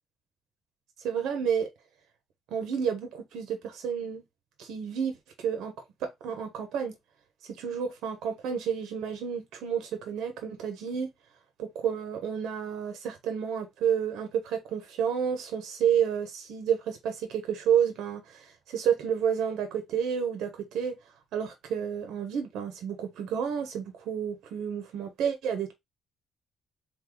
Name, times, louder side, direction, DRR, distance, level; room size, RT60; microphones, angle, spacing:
voice 1, 1.0-1.7 2.5-4.2 4.6-5.1 5.4-5.7 6.0-6.9 7.6-11.1 11.6-20.9 21.3-25.7, right 8 dB, 85° right, 1.1 m, -30 dB
4.0 x 2.6 x 4.8 m
cardioid pair, 90°, 0 cm